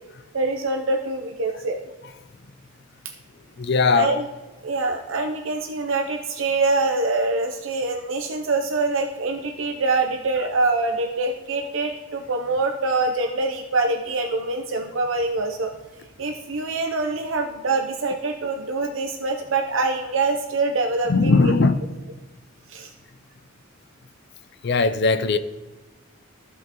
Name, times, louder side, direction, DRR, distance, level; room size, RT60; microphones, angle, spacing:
voice 1, 0.3-1.8 3.9-4.3 4.6-15.7 16.2-21.5 22.7-22.9, right 3 dB, 70° right, 0.7 m, -24 dB
voice 2, 3.6-4.1 21.1-21.8 24.6-25.4, left 3 dB, 55° left, 0.5 m, -19 dB
15.0 x 5.7 x 3.0 m
head